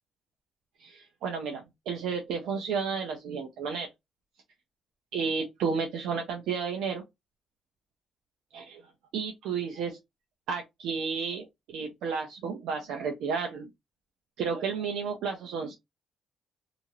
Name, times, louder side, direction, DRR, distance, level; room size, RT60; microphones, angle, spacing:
voice 1, 0.8-3.9 5.1-7.0 8.5-8.8 9.1-10.0 10.5-13.7 14.4-15.7, right 5 dB, 85° right, 0.7 m, -32 dB
2.8 x 2.5 x 2.8 m
cardioid pair, 90°, 0 cm